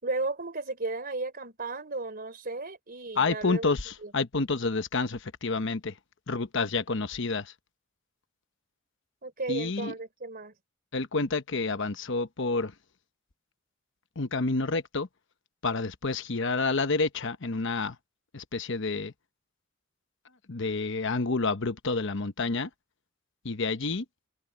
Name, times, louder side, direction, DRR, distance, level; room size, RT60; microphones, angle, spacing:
voice 1, 0.0-3.7 4.0-4.1 9.2-10.5, right 3 dB, 45° right, 3.7 m, -34 dB
voice 2, 3.2-5.9 6.3-7.5 9.5-9.9 10.9-12.7 14.2-15.1 15.6-18.0 18.3-19.1 20.5-22.7 23.4-24.0, left 3 dB, 65° left, 1.0 m, -29 dB
head